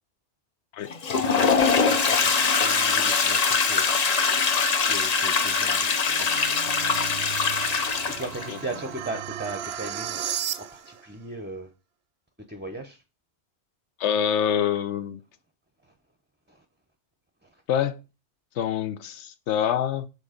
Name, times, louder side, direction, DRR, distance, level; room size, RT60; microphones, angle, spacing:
Toilet flush, 0.9-8.5, left 5 dB, 40° left, 0.7 m, -23 dB
voice 1, 1.2-4.4 4.9-6.7 8.0-10.2 10.6-11.7 12.5-13.0 15.8-15.9 16.5-16.6 17.4-17.6, right 2 dB, 10° right, 0.6 m, -38 dB
sound 1, 5.9-11.0, right 9 dB, 70° right, 0.8 m, -35 dB
voice 2, 14.0-15.2 17.7-18.0 18.6-20.1, left 9 dB, 85° left, 0.9 m, -25 dB
6.6 x 4.1 x 5.0 m
omnidirectional pair, 1.2 m